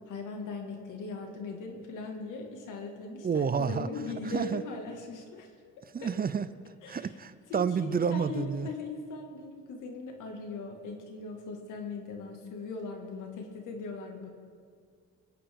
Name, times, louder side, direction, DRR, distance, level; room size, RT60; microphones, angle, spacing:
voice 1, 0.1-5.5 6.0-6.1 6.8-7.1 7.5-14.3, left 4 dB, 85° left, 2 dB, 2.1 m, -39 dB
voice 2, 3.2-3.9 4.3-4.6 5.9-6.5 6.9-8.7, right 6 dB, 30° right, 13 dB, 0.7 m, -29 dB
24.0 x 8.9 x 3.7 m, 2.1 s
cardioid pair, 90°, 30 cm